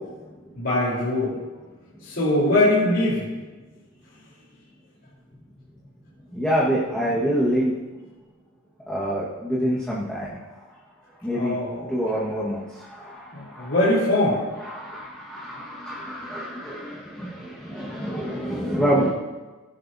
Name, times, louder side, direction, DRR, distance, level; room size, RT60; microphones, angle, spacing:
voice 1, 0.6-1.4 2.0-3.3 11.3-11.9 13.3-14.4, left 1 dB, 55° left, -9 dB, 3.8 m, -22 dB
voice 2, 6.3-7.8 8.9-10.4 11.2-11.5 11.9-13.7 14.6-19.1, equal, 5° left, -7 dB, 1.5 m, -26 dB
18.5 x 10.5 x 2.7 m, 1.3 s
head